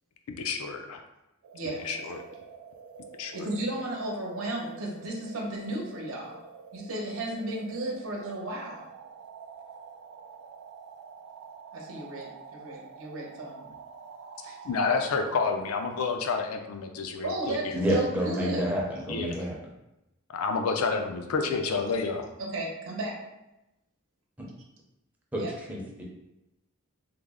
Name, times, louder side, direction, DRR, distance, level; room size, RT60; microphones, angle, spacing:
voice 1, 0.3-1.0 1.8-2.2 3.2-3.5 14.6-17.8 19.1-19.4 20.3-22.3, left 4 dB, 90° left, 5 dB, 0.4 m, -29 dB
sound 1, 1.4-16.1, right 5 dB, 90° right, 0.3 m, -47 dB
voice 2, 1.5-1.8 3.3-6.4 6.7-8.8 11.7-13.7 14.4-14.6 17.2-18.7 22.5-23.1 25.4-25.5, right 2 dB, 65° right, -1 dB, 0.8 m, -34 dB
voice 3, 17.7-19.6 24.4-24.5 25.3-26.0, equal, 5° right, -3 dB, 0.6 m, -29 dB
3.3 x 2.0 x 3.5 m, 0.92 s
head